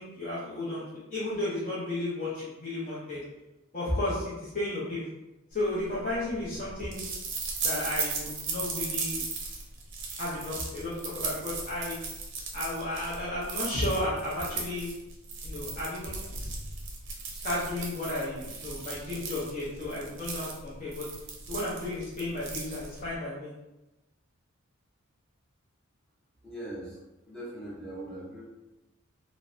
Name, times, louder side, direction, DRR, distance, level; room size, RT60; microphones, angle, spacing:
voice 1, 0.0-3.2 3.7-5.0 5.5-7.1 7.6-9.2 10.2-12.0 12.5-14.9 15.4-16.2 17.4-21.1 21.5-23.5, left 1 dB, 40° left, -9 dB, 0.6 m, -33 dB
sound 1, 5.7-23.2, right 4 dB, 60° right, 0.5 m, -37 dB
voice 2, 26.4-27.0 27.3-28.4, right 1 dB, 5° left, -8 dB, 0.7 m, -40 dB
3.1 x 2.1 x 2.5 m, 1.0 s
head